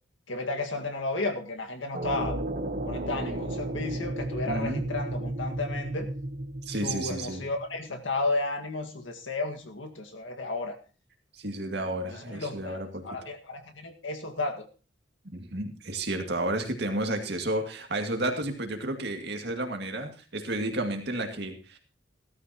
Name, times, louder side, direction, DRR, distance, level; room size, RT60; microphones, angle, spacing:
voice 1, 0.3-2.4 2.8-6.1 6.8-10.8 12.1-14.7, left 2 dB, 85° left, 4 dB, 1.8 m, -33 dB
sound 1, 1.9-7.8, right 1 dB, 45° right, 1.1 m, -33 dB
voice 2, 4.5-4.9 6.7-7.4 11.3-13.0 15.3-21.8, right 1 dB, 60° right, 4 dB, 2.2 m, -31 dB
16.5 x 13.5 x 3.0 m, 0.34 s
head